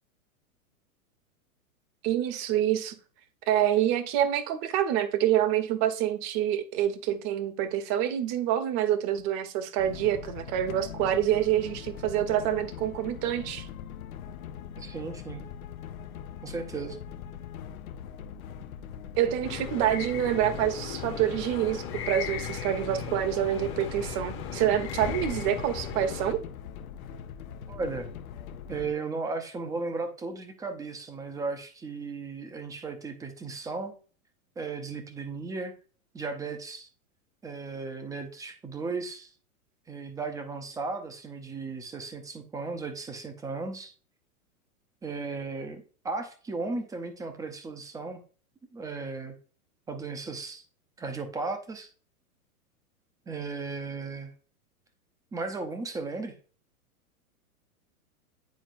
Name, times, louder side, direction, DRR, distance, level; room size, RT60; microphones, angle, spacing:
voice 1, 2.0-2.9 3.5-13.7 19.2-26.4, right 11 dB, 35° right, 0.9 m, -27 dB
sound 1, 9.8-28.9, left 8 dB, 70° left, 0.6 m, -42 dB
voice 2, 14.8-15.4 16.4-17.0 27.7-28.1 28.7-33.9 34.6-35.7 36.1-36.9 37.4-39.3 39.9-43.9 45.0-48.2 48.7-49.4 49.9-50.6 51.0-51.9 53.3-54.3 55.3-56.3, right 4 dB, 10° right, 0.5 m, -35 dB
sound 2, 19.4-26.3, left 7 dB, 30° left, 0.8 m, -37 dB
9.3 x 4.3 x 2.5 m
hypercardioid pair, 110°, 44 cm